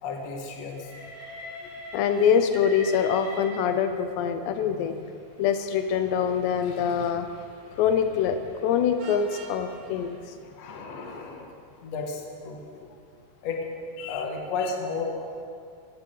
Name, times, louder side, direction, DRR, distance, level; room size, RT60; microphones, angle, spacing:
voice 1, 0.0-0.9 10.5-11.6 11.8-12.6 13.4-13.7 14.1-15.1, left 4 dB, 55° left, 1 dB, 1.9 m, -33 dB
Train, 0.7-4.1 5.0-10.2, left 1 dB, 15° left, 1.9 m, -45 dB
voice 2, 1.9-5.1 5.4-7.3 7.7-10.2 14.0-14.2, left 7 dB, 85° left, 8 dB, 2.8 m, -24 dB
Vehicle horn car horn honking, 9.0-9.6, right 3 dB, 70° right, 3.1 m, -43 dB
16.0 x 15.0 x 3.8 m, 2.3 s
omnidirectional pair, 5.0 m